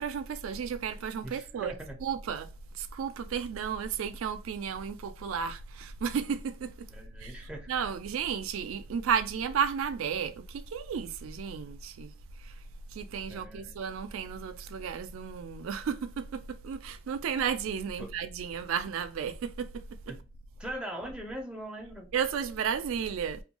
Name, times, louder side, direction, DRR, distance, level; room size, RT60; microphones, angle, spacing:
voice 1, 0.0-1.7 2.0-2.5 2.8-6.9 7.2-12.1 12.4-12.5 12.9-19.9 22.1-23.4, right 7 dB, 90° right, 0.3 m, -33 dB
voice 2, 1.2-2.0 6.9-7.7 13.3-13.8 18.0-18.1 20.1-20.2 20.6-22.1, right 1 dB, 5° right, 0.4 m, -41 dB
2.6 x 2.2 x 2.8 m
head